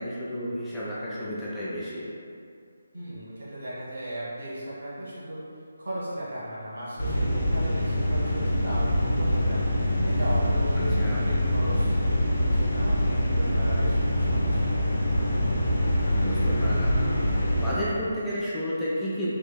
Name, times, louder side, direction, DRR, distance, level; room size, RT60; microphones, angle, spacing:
voice 1, 0.0-2.1 11.0-11.2 16.1-17.0 17.6-19.3, equal, 5° left, -10 dB, 0.3 m, -31 dB
voice 2, 2.9-5.4 5.8-9.6 10.0-14.7, right 1 dB, 60° right, -9 dB, 1.3 m, -36 dB
sound 1, 7.0-17.7, left 1 dB, 60° left, 0.8 m, -24 dB
3.7 x 2.5 x 2.2 m, 2.4 s
figure-of-eight pair, 150°, 0 cm